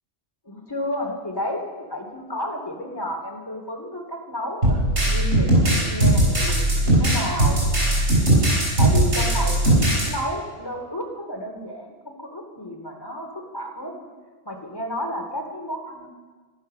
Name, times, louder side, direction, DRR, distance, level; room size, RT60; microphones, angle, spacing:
voice 1, 0.4-7.6 8.5-14.1 14.4-16.1, equal, 20° left, 1 dB, 2.6 m, -32 dB
sound 1, 4.6-10.1, right 1 dB, 90° right, 6.6 m, -19 dB
15.5 x 12.0 x 6.6 m, 1.4 s
omnidirectional pair, 1.2 m